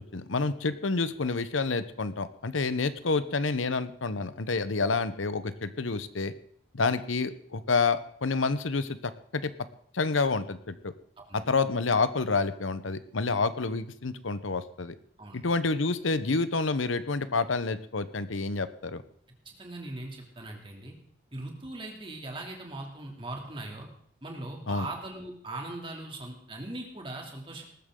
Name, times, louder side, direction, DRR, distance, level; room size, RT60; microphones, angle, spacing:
voice 1, 0.1-6.3 6.7-9.0 9.3-9.5 9.9-10.9 11.3-14.9 15.3-19.0 24.7-24.9, left 4 dB, 90° left, 13 dB, 1.0 m, -28 dB
voice 2, 19.4-20.9 21.3-23.9 24.2-27.6, right 2 dB, 25° right, 1 dB, 2.9 m, -40 dB
19.0 x 14.0 x 3.9 m, 0.64 s
head